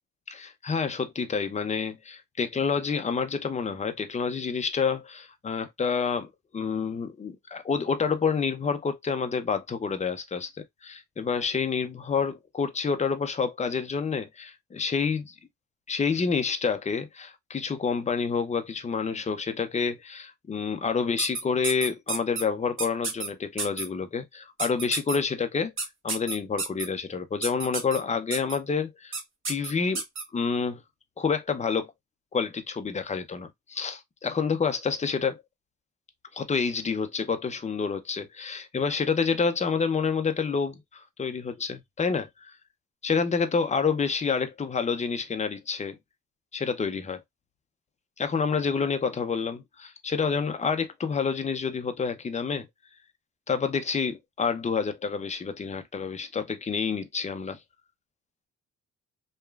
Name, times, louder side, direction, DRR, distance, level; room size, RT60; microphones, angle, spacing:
voice 1, 0.3-10.5 10.8-15.3 15.9-25.7 26.0-29.2 29.5-30.0 30.3-30.8 31.2-31.9 32.3-35.4 36.3-42.5 43.0-46.0 46.5-47.2 48.2-52.7 53.5-57.6, left 5 dB, 25° left, 0.6 m, -28 dB
sound 1, 21.2-22.4 22.8-23.3 23.6-23.9 24.6-25.2 25.8-26.9 27.4-28.0 28.3-28.6 29.1-29.2 29.5-30.2, right 4 dB, 40° right, 1.0 m, -30 dB
3.0 x 2.3 x 2.3 m
cardioid pair, 90°, 30 cm